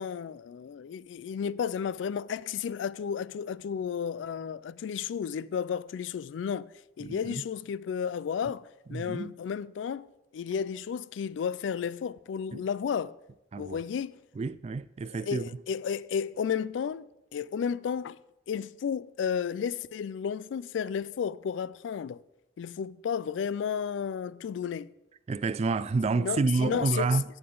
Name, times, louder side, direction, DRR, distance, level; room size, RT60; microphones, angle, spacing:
voice 1, 0.0-6.7 7.0-8.6 8.9-10.1 10.3-13.1 13.6-14.2 15.2-17.1 17.3-18.2 18.5-22.2 22.6-24.9 26.1-27.2, left 7 dB, 85° left, 0.3 m, -32 dB
voice 2, 7.0-7.3 8.9-9.3 12.5-12.6 13.5-13.8 14.4-15.5 25.3-27.2, right 4 dB, 35° right, 0.3 m, -29 dB
16.0 x 5.9 x 3.9 m
head